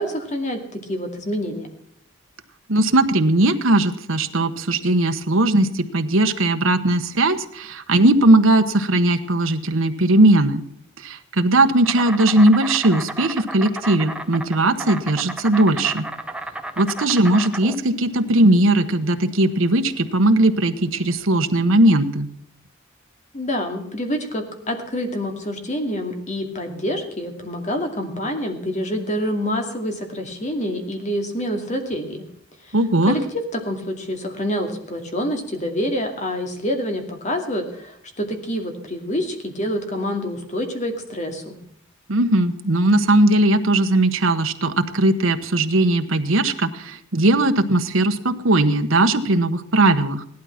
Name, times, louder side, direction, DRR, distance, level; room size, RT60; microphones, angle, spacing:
voice 1, 0.0-1.7 23.3-32.2 32.7-32.8 33.1-33.2 33.5-41.6, equal, 35° left, 4 dB, 2.3 m, -27 dB
voice 2, 2.7-10.6 11.0-16.1 16.8-22.3 32.7-33.2 42.1-50.2, right 1 dB, 75° right, 7 dB, 1.2 m, -18 dB
Insect, 11.8-21.8, right 2 dB, 5° right, 0.9 m, -33 dB
17.0 x 12.0 x 5.9 m, 0.67 s
head